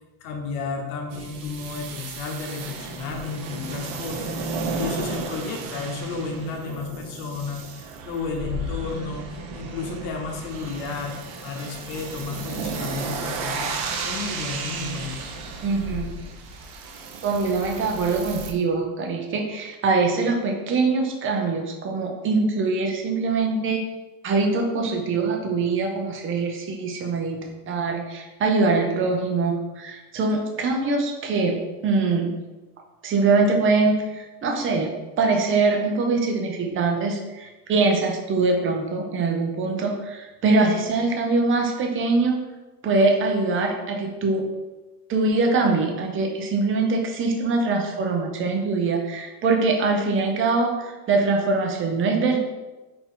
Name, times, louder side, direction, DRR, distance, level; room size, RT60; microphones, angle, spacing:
voice 1, 0.2-9.3 9.5-11.1 11.4-13.7 14.0-15.2, left 4 dB, 75° left, 2 dB, 1.0 m, -32 dB
sound 1, 1.1-18.5, right 3 dB, 80° right, 0.8 m, -33 dB
voice 2, 15.6-16.1 17.2-23.8 24.2-32.4 33.0-42.4 42.8-44.5 45.1-52.4, right 3 dB, 25° right, 2 dB, 0.6 m, -23 dB
4.2 x 2.8 x 3.7 m, 1.1 s
supercardioid pair, 125°, 45 cm